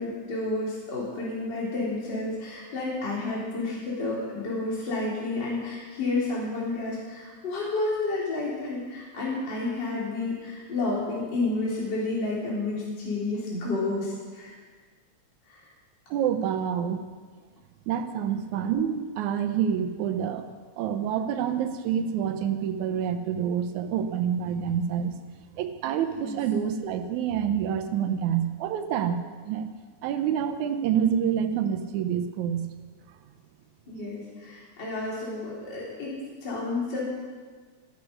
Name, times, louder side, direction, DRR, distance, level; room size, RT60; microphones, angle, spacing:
voice 1, 0.0-14.5 15.5-15.6 26.2-26.4 33.9-37.0, left 2 dB, 35° left, -6 dB, 3.5 m, -30 dB
voice 2, 16.1-17.0 17.9-20.5 20.8-25.1 25.6-29.7 30.0-32.7, right 8 dB, 80° right, 8 dB, 2.2 m, -27 dB
13.0 x 12.0 x 5.3 m, 1.5 s
omnidirectional pair, 3.4 m